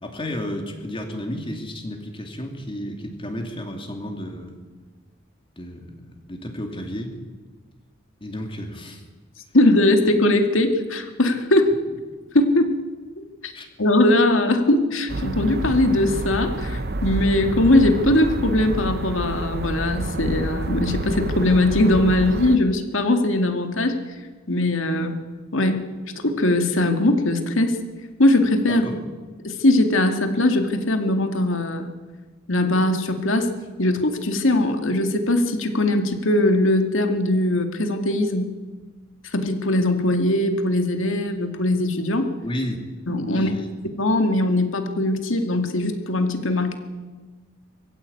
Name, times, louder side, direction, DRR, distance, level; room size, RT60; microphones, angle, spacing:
voice 1, 0.0-4.6 5.6-7.2 8.2-9.1 13.5-13.7 28.7-29.1 42.4-42.8 43.3-43.7, left 1 dB, 25° left, 3 dB, 2.6 m, -32 dB
voice 2, 9.5-11.8 12.3-12.7 13.2-13.5 13.8-24.0 24.5-25.2 25.5-25.8 26.2-27.8 28.2-28.9 29.4-31.9 32.5-33.5 33.8-38.5 39.3-42.3 43.1-43.5 44.0-46.7, left 1 dB, 65° left, 6 dB, 2.4 m, -20 dB
sound 1, 15.1-22.6, right 2 dB, 50° right, 1.0 m, -28 dB
22.0 x 15.5 x 8.6 m, 1.3 s
head